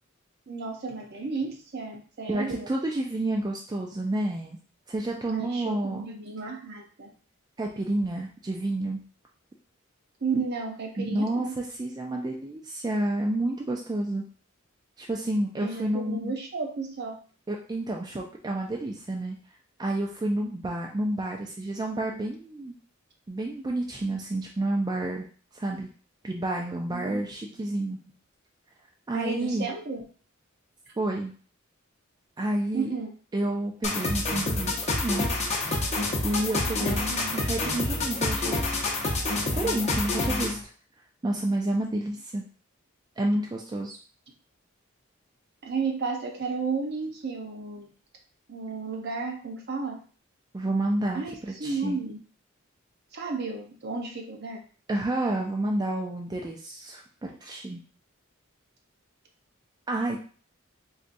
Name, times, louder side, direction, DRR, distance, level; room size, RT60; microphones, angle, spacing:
voice 1, 0.5-2.7 5.3-7.1 10.2-11.5 15.6-17.2 26.9-27.2 27.5-27.6 29.1-30.0 32.7-33.1 45.6-47.9 48.5-49.9 51.1-52.2 53.1-54.6, right 4 dB, 55° right, 2 dB, 0.7 m, -33 dB
voice 2, 2.3-4.6 4.9-6.1 7.6-9.0 11.0-14.2 15.0-16.3 17.5-19.4 19.8-22.7 23.3-25.3 25.5-25.9 26.2-28.0 29.1-29.7 31.0-31.3 32.4-32.9 33.3-35.3 36.2-38.6 39.4-40.6 41.2-42.4 43.2-44.0 50.5-51.2 51.6-52.0 54.9-57.8 59.9-60.2, right 1 dB, 20° right, 0 dB, 0.3 m, -29 dB
sound 1, 33.8-40.6, left 2 dB, 35° left, 0.7 m, -28 dB
4.0 x 2.3 x 2.5 m, 0.40 s
head